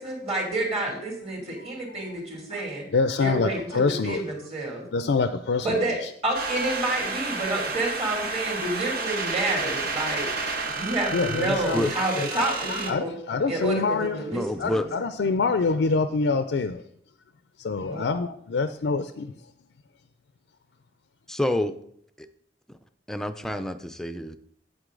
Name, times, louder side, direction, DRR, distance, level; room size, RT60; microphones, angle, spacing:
voice 1, 0.0-2.9 3.2-4.8 5.6-10.3 10.8-13.1 13.5-14.8 17.9-18.1, right 2 dB, 35° right, -1 dB, 2.7 m, -29 dB
voice 2, 2.9-4.2 4.9-5.8 11.1-11.9 12.2-14.2 14.6-16.8 17.6-19.3, left 4 dB, 85° left, 10 dB, 0.4 m, -26 dB
sound 1, 6.3-12.9, right 4 dB, 60° right, 1.1 m, -31 dB
voice 3, 14.3-14.9 21.3-21.8 22.2-22.3 22.7-22.8 23.1-24.3, left 1 dB, 5° left, 9 dB, 0.4 m, -28 dB
8.2 x 7.9 x 3.8 m, 0.66 s
head